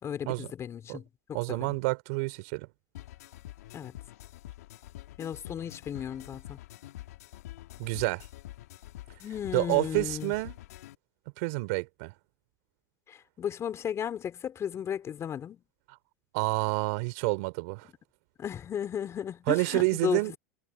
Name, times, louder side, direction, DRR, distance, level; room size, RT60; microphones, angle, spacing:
voice 1, 0.0-1.8 3.7-4.0 5.2-6.6 9.2-10.3 13.1-15.6 18.4-20.3, left 9 dB, 35° left, 3.6 m, -35 dB
voice 2, 1.3-2.7 7.8-8.3 9.5-10.6 11.4-12.1 16.3-17.9 19.5-20.3, right 27 dB, 65° right, 2.9 m, -28 dB
sound 1, 2.9-10.9, left 15 dB, 80° left, 2.3 m, -46 dB
hypercardioid pair, 95°, 9 cm